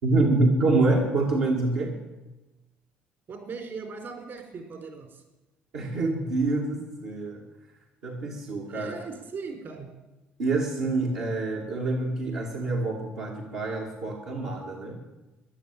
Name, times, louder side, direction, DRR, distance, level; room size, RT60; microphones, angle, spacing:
voice 1, 0.0-2.0 5.7-7.4 8.0-9.0 10.4-15.0, right 2 dB, 85° right, -3 dB, 2.6 m, -26 dB
voice 2, 3.3-5.2 8.6-9.9, right 4 dB, 55° right, 4 dB, 4.5 m, -39 dB
14.0 x 11.0 x 9.1 m, 1.1 s
supercardioid pair, 75°, 5 cm